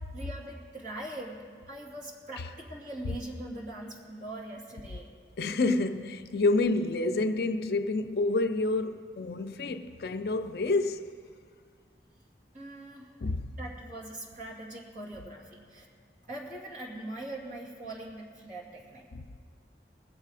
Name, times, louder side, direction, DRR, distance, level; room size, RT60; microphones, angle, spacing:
voice 1, 0.1-5.1 12.5-13.1 13.6-15.9 16.2-19.0, right 1 dB, 45° right, 2.5 m, -42 dB
voice 2, 5.4-11.1 13.2-13.5 19.1-19.2, left 2 dB, 60° left, 0.5 m, -28 dB
20.5 x 7.5 x 4.8 m
head